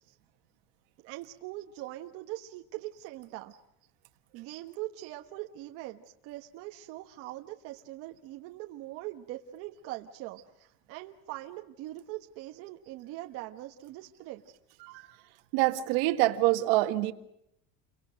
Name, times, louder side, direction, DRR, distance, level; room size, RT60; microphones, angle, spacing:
voice 1, 1.0-3.5 4.3-14.4, right 16 dB, 50° right, 4 dB, 1.3 m, -42 dB
voice 2, 15.5-17.1, right 17 dB, 70° right, 9 dB, 1.8 m, -26 dB
29.5 x 24.5 x 6.4 m, 0.76 s
cardioid pair, 175°, 30 cm